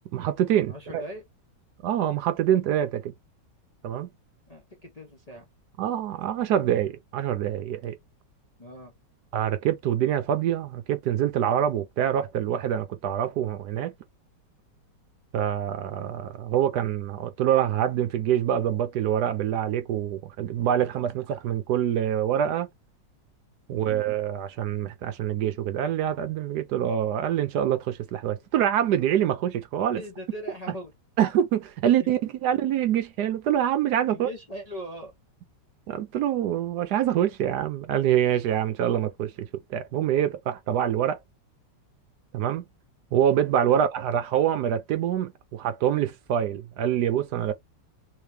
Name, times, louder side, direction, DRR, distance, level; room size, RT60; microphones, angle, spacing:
voice 1, 0.1-1.0 1.8-3.1 3.8-4.1 5.8-8.0 9.3-13.9 15.3-22.7 23.7-30.0 31.2-34.3 35.9-41.2 42.3-42.6 43.1-47.5, right 10 dB, 75° right, 1.1 m, -25 dB
voice 2, 0.7-1.2 4.5-5.5 8.6-8.9 23.7-24.0 30.0-30.9 32.0-32.1 34.1-35.1 43.7-43.8, equal, 40° left, 0.6 m, -40 dB
3.3 x 2.9 x 3.2 m
omnidirectional pair, 1.9 m